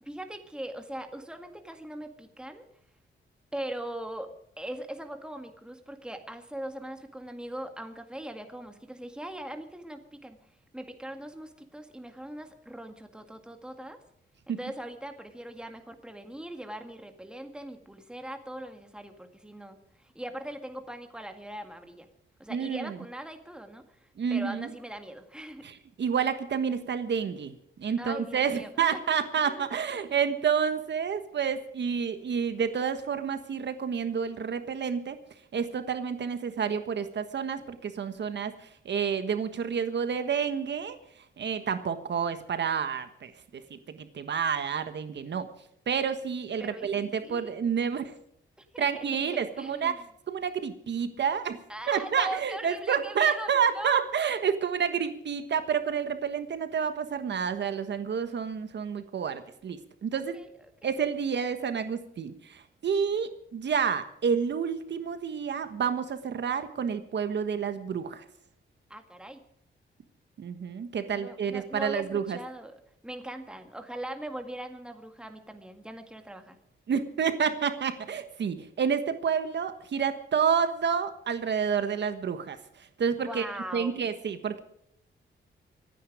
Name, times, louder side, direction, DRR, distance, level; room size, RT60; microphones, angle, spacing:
voice 1, 0.0-2.7 3.5-4.3 4.6-10.4 10.7-14.0 14.5-22.1 22.4-25.6 28.0-29.2 29.4-30.2 46.6-47.5 48.6-50.1 51.7-54.0 60.1-60.5 60.8-60.9 68.9-69.4 71.1-76.6 83.2-84.0, right 1 dB, 5° right, 6 dB, 1.9 m, -41 dB
voice 2, 22.5-23.0 24.2-24.7 25.6-27.5 27.8-35.2 35.5-41.0 41.4-45.5 45.9-48.1 48.8-49.9 50.3-51.6 51.9-60.4 60.8-68.2 70.4-72.4 76.9-83.4 83.7-84.6, right 7 dB, 65° right, 9 dB, 1.4 m, -29 dB
25.5 x 9.6 x 5.0 m, 0.71 s
wide cardioid pair, 115°, 20 cm